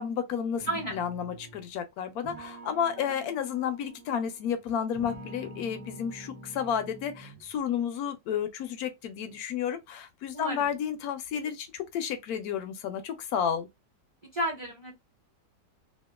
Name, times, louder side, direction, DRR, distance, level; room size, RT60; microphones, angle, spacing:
voice 1, 0.0-13.7, left 8 dB, 70° left, 0.9 m, -32 dB
sound 1, 0.6-1.7 2.2-4.5 4.9-7.5, right 1 dB, 70° right, 0.3 m, -47 dB
voice 2, 0.7-1.0 10.3-10.7 14.3-14.9, right 1 dB, 25° right, 0.7 m, -32 dB
2.8 x 2.3 x 2.3 m
omnidirectional pair, 1.9 m